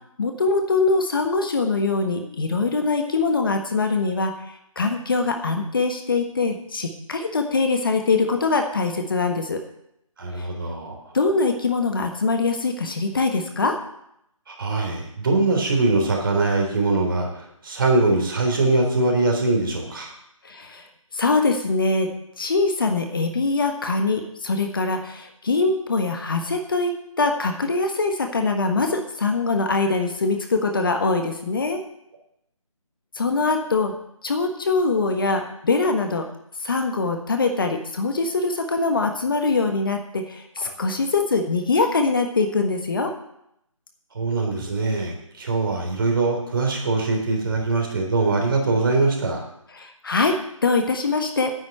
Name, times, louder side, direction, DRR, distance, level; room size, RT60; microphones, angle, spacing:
voice 1, 0.2-9.6 10.4-10.5 11.1-13.8 20.4-20.8 21.1-22.1 22.4-31.8 33.1-33.9 34.2-36.3 36.6-43.1 49.8-51.5, left 3 dB, 40° left, 5 dB, 1.4 m, -23 dB
voice 2, 10.2-11.0 14.5-20.1 44.1-49.4, right 3 dB, 40° right, 1 dB, 3.8 m, -22 dB
9.9 x 7.5 x 8.7 m, 0.77 s
figure-of-eight pair, 160°, 18 cm